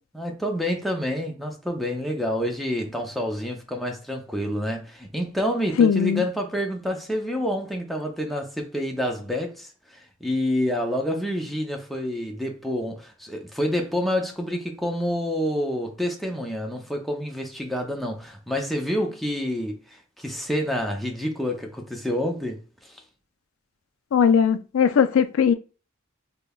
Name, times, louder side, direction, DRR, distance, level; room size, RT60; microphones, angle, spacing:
voice 1, 0.1-23.0, equal, ahead, 0.5 m, -28 dB
voice 2, 5.8-6.2 24.1-25.5, left 7 dB, 85° left, 0.4 m, -19 dB
5.1 x 2.1 x 2.3 m
head